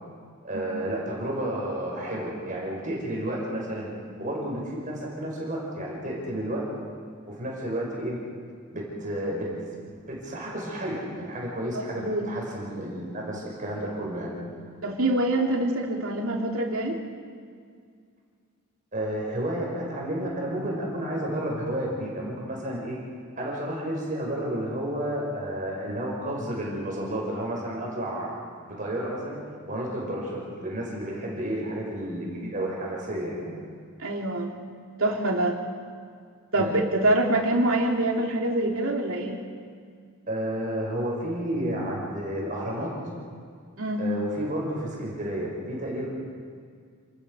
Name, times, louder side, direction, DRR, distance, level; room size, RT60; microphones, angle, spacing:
voice 1, 0.4-3.9 4.2-6.7 7.3-8.2 8.7-9.5 10.1-14.3 18.9-23.0 23.4-28.3 28.6-29.4 29.7-33.5 36.6-36.8 40.3-43.0 44.0-46.1, right 1 dB, 35° right, -3 dB, 5.7 m, -31 dB
voice 2, 11.7-12.2 14.8-17.0 34.0-34.5 35.0-35.6 36.5-39.4 43.8-44.1, right 1 dB, 75° right, 0 dB, 3.0 m, -25 dB
28.5 x 20.0 x 5.5 m, 2.1 s
head